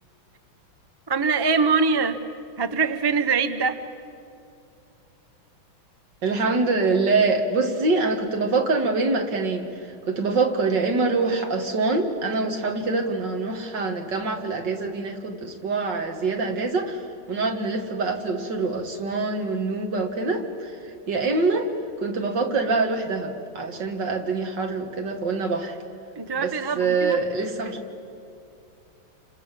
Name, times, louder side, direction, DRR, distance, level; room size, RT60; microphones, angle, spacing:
voice 1, 1.1-2.2 2.6-3.8 26.2-27.2, right 5 dB, 25° right, 9 dB, 0.5 m, -23 dB
voice 2, 6.2-17.0 17.3-21.7 22.0-25.8 26.4-27.8, right 3 dB, 55° right, 4 dB, 2.6 m, -25 dB
29.5 x 26.5 x 7.6 m, 2.6 s
omnidirectional pair, 2.4 m